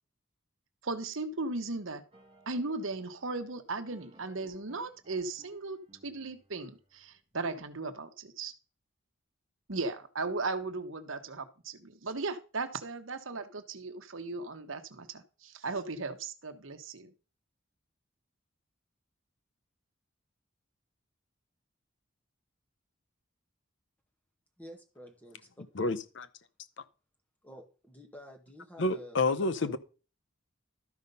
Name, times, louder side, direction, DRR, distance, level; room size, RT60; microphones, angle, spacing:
voice 1, 0.8-2.0 2.5-5.8 6.0-8.5 9.7-17.1, right 3 dB, 75° right, 1.1 m, -37 dB
sound 1, 2.1-7.4, right 2 dB, 25° right, 2.7 m, -61 dB
voice 2, 24.6-25.6 27.4-29.8, equal, 10° left, 1.8 m, -50 dB
voice 3, 25.8-26.3 28.8-29.8, left 2 dB, 60° left, 0.7 m, -29 dB
12.5 x 5.3 x 5.4 m
head